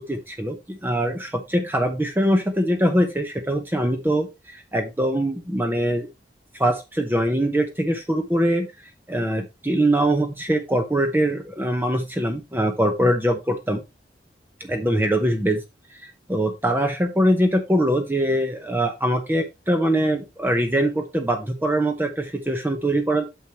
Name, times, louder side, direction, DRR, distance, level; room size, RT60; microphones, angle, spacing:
voice 1, 0.1-6.1 6.5-8.7 9.1-13.8 14.6-15.6 15.9-23.2, right 1 dB, 10° right, 5 dB, 0.8 m, -23 dB
8.9 x 6.4 x 3.0 m, 0.23 s
head